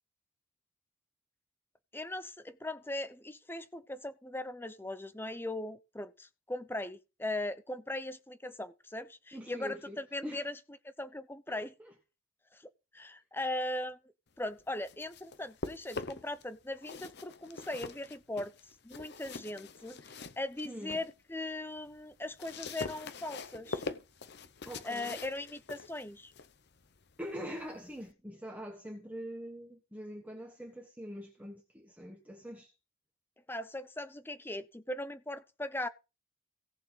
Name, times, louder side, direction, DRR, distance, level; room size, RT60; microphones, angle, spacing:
voice 1, 1.9-10.6 11.0-11.7 12.5-14.0 14.4-18.5 18.8-23.8 24.8-26.3 33.5-35.9, left 1 dB, 10° left, 0.7 m, -39 dB
voice 2, 9.3-10.0 10.2-10.4 11.5-11.9 20.6-21.0 24.7-25.2 27.2-32.7, equal, 5° right, 1.4 m, -44 dB
sound 1, 14.6-16.4 16.8-21.1 21.5-28.1, left 4 dB, 55° left, 0.9 m, -44 dB
17.5 x 6.6 x 4.0 m
head